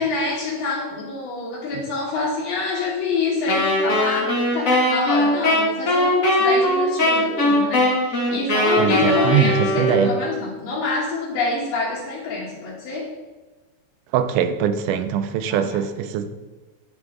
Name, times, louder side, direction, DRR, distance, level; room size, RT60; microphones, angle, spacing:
voice 1, 0.0-13.1 15.5-15.7, left 3 dB, 75° left, -7 dB, 2.8 m, -26 dB
Wind instrument woodwind instrument, 3.5-10.3, left 1 dB, 55° left, 0.9 m, -20 dB
voice 2, 8.8-10.1 14.1-16.3, right 8 dB, 80° right, 9 dB, 1.9 m, -22 dB
11.0 x 4.0 x 3.5 m, 1.2 s
omnidirectional pair, 3.9 m